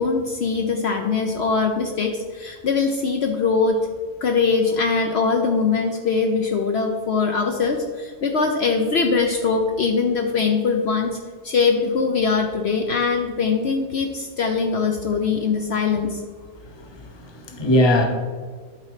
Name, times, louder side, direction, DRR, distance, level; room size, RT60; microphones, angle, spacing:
voice 1, 0.0-3.8 4.2-11.2 11.4-16.2, left 4 dB, 60° left, 3 dB, 0.9 m, -22 dB
voice 2, 16.6-18.0, left 1 dB, 25° left, 3 dB, 0.9 m, -21 dB
11.5 x 4.2 x 4.9 m, 1.5 s
omnidirectional pair, 1.3 m